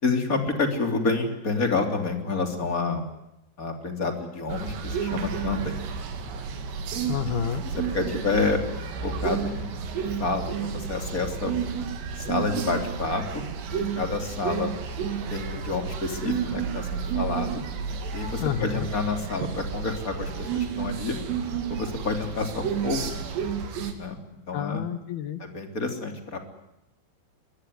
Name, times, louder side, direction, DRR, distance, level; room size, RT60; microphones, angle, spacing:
voice 1, 0.0-3.1 3.6-5.8 7.0-7.1 7.9-8.6 9.0-11.5 12.2-14.7 15.3-17.6 18.1-21.2 21.7-23.2 24.0-24.2 24.5-24.8 25.4-26.4, left 3 dB, 20° left, 5 dB, 3.1 m, -29 dB
sound 1, 4.5-23.9, right 6 dB, 70° right, 4.6 m, -31 dB
voice 2, 7.1-7.6 18.4-18.9 24.5-25.4, left 8 dB, 65° left, 11 dB, 3.0 m, -29 dB
24.0 x 21.0 x 9.6 m, 0.88 s
omnidirectional pair, 5.2 m